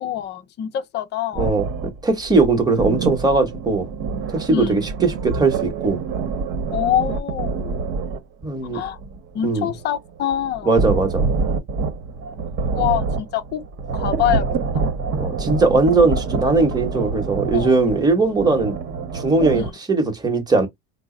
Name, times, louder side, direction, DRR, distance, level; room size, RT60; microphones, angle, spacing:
voice 1, 0.0-1.5 4.5-4.8 6.7-7.8 8.7-9.0 9.3-10.7 12.7-13.6 13.9-14.8 17.5-17.8 19.5-19.7, left 11 dB, 35° left, 0.6 m, -25 dB
voice 2, 1.3-3.9 4.3-6.0 8.4-8.8 9.4-9.7 10.6-11.3 15.2-18.7 19.1-20.7, right 3 dB, 15° right, 1.0 m, -19 dB
sound 1, 1.4-8.2 8.6-19.7, right 4 dB, 45° right, 1.0 m, -26 dB
3.7 x 2.0 x 3.7 m
cardioid pair, 135°, 30 cm